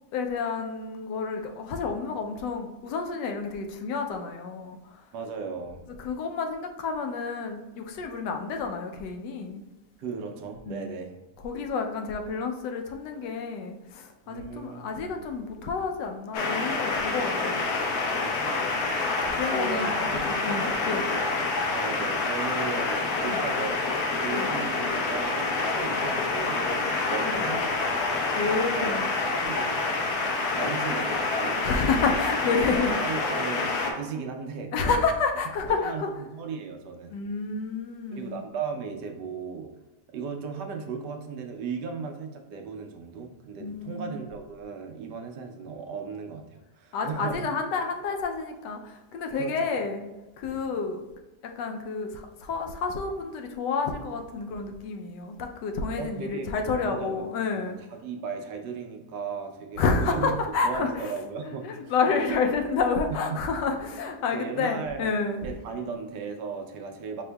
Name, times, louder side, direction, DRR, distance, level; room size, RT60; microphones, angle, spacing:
voice 1, 0.1-4.8 6.0-9.6 10.7-10.8 11.4-17.6 19.3-21.0 23.3-23.4 24.3-24.5 27.2-27.4 28.3-29.1 31.6-33.1 34.7-36.1 37.1-38.4 43.6-44.2 46.9-50.0 50.4-51.1 51.4-57.7 59.8-61.1 61.5-65.4, left 4 dB, 85° left, 5 dB, 1.2 m, -29 dB
voice 2, 5.1-5.8 10.0-11.2 14.3-15.1 18.2-19.0 19.4-21.0 21.7-23.8 24.1-28.0 28.7-29.9 30.5-32.2 32.9-33.7 33.9-35.0 35.7-37.2 38.1-39.7 40.1-47.5 49.3-49.7 50.5-50.6 56.0-56.5 56.8-57.3 57.5-60.3 60.6-62.4 63.3-63.4 63.8-63.9 64.3-65.1 65.4-67.2, right 5 dB, 80° right, 4 dB, 1.2 m, -36 dB
sound 1, 16.3-33.9, left 3 dB, 70° left, 1.1 m, -27 dB
5.1 x 3.5 x 2.2 m, 1.1 s
omnidirectional pair, 1.8 m